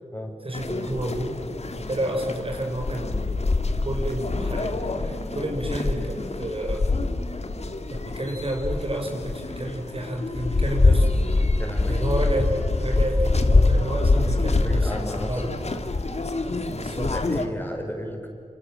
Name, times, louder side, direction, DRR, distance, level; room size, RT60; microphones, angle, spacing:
voice 1, 0.4-1.4 1.8-3.4 3.8-6.9 7.9-11.1 11.9-15.6 16.7-17.2, right 1 dB, 45° right, 2 dB, 5.2 m, -30 dB
sound 1, 0.5-17.5, left 3 dB, 55° left, 2.1 m, -25 dB
voice 2, 11.6-12.0 14.6-15.5 17.0-18.3, left 1 dB, 15° left, 1 dB, 5.5 m, -33 dB
28.0 x 27.5 x 7.5 m, 2.4 s
wide cardioid pair, 70°, 13 cm